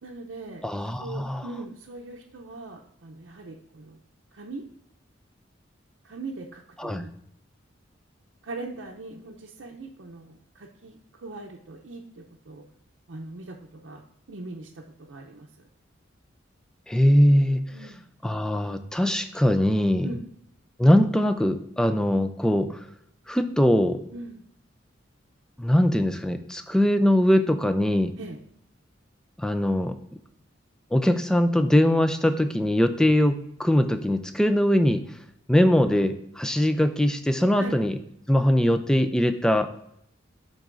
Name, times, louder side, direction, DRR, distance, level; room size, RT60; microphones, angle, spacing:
voice 1, 0.0-0.6 1.0-4.0 4.3-4.6 6.0-7.1 8.4-12.6 13.1-15.5 17.7-18.1 20.0-20.2 24.1-24.5 28.2-28.4 37.6-37.8, right 2 dB, 80° right, -2 dB, 0.7 m, -40 dB
voice 2, 0.6-1.4 6.8-7.1 16.9-17.6 18.2-20.1 20.8-22.8 23.3-24.0 25.6-28.1 29.4-30.0 30.9-35.0 35.5-38.0 38.3-39.7, equal, 5° left, 8 dB, 0.4 m, -21 dB
12.0 x 4.0 x 2.5 m, 0.74 s
head